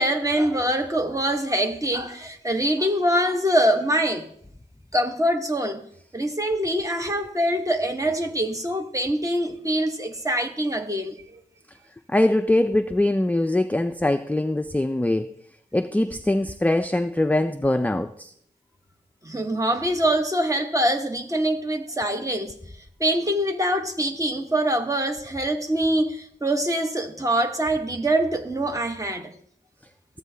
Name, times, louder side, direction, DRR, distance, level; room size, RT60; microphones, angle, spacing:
voice 1, 0.0-4.3 4.9-5.8 6.1-11.4 19.2-22.6 23.0-29.3, right 1 dB, 15° right, 1.0 m, -24 dB
voice 2, 12.1-15.3 15.7-18.3, left 1 dB, 10° left, 0.3 m, -22 dB
14.0 x 8.1 x 2.7 m
wide cardioid pair, 80°, 19 cm